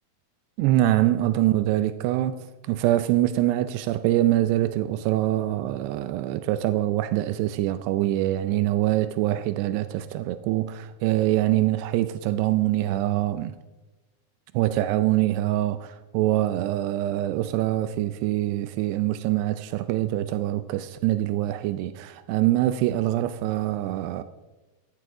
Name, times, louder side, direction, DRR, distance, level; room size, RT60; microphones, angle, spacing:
voice 1, 0.6-13.6 14.5-24.2, right 14 dB, 85° right, 2.7 m, -24 dB
16.5 x 15.0 x 3.7 m
omnidirectional pair, 4.7 m